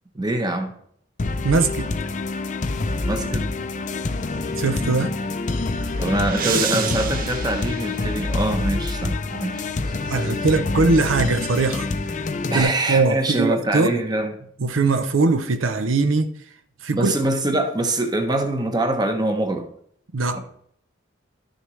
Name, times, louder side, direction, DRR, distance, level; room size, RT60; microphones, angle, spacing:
voice 1, 0.1-0.7 3.0-3.5 6.0-10.4 12.5-14.5 16.9-19.7, right 1 dB, 20° right, 1.0 m, -24 dB
sound 1, 1.2-12.6, left 3 dB, 40° left, 0.5 m, -26 dB
voice 2, 1.4-1.9 4.6-5.1 10.1-13.9 14.6-16.3 16.8-17.1 20.1-20.4, right 3 dB, 80° right, 0.7 m, -21 dB
sound 2, 5.5-8.7, right 9 dB, 45° right, 0.4 m, -31 dB
12.0 x 6.5 x 3.2 m
head